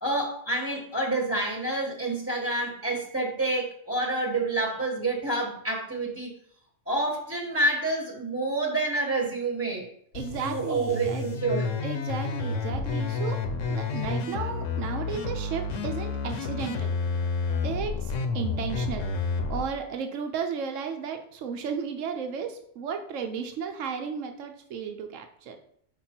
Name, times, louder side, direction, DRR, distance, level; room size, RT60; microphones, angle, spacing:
voice 1, 0.0-6.3 6.9-9.9 10.4-11.8, right 2 dB, 10° right, -2 dB, 1.1 m, -28 dB
sound 1, 10.1-19.6, left 4 dB, 80° left, 1.2 m, -30 dB
voice 2, 10.1-11.3 11.8-16.9 17.6-19.1 19.5-25.6, right 6 dB, 85° right, 5 dB, 1.1 m, -34 dB
6.4 x 5.3 x 4.3 m, 0.65 s
omnidirectional pair, 1.3 m